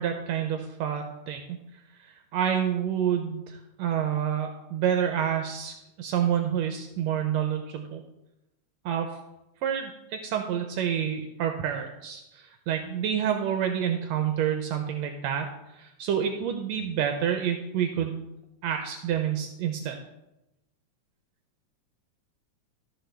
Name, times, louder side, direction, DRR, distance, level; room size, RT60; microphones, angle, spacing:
voice 1, 0.0-1.4 2.0-8.0 8.9-9.2 9.6-15.5 15.7-18.2 18.6-20.0, right 9 dB, 80° right, 5 dB, 1.7 m, -28 dB
13.5 x 6.0 x 3.3 m, 0.92 s
omnidirectional pair, 3.4 m